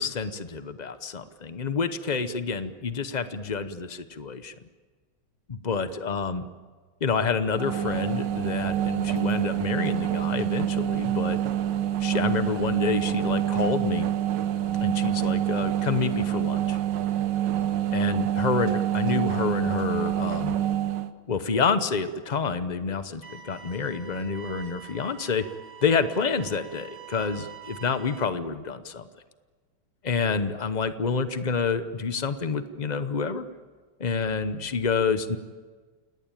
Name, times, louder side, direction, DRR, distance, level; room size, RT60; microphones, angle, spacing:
voice 1, 0.0-4.5 5.5-6.4 7.0-11.4 12.0-14.1 14.8-16.8 17.9-20.6 21.3-25.4 25.8-29.0 30.0-33.5 34.0-35.4, left 5 dB, 75° left, 11 dB, 0.4 m, -28 dB
sound 1, 7.5-21.1, right 11 dB, 65° right, 1.6 m, -26 dB
sound 2, 23.2-28.2, right 7 dB, 30° right, 1.5 m, -46 dB
29.0 x 18.5 x 9.0 m, 1.5 s
omnidirectional pair, 2.2 m